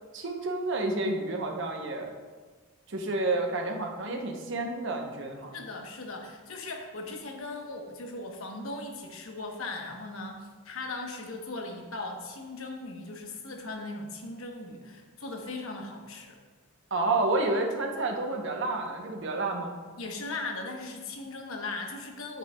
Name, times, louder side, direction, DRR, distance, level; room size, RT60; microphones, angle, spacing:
voice 1, 0.1-2.1 2.9-5.5 16.9-19.7, right 2 dB, 60° right, 3 dB, 0.8 m, -30 dB
voice 2, 5.5-16.4 20.0-22.4, left 2 dB, 70° left, 2 dB, 1.0 m, -38 dB
8.8 x 7.4 x 2.3 m, 1.4 s
head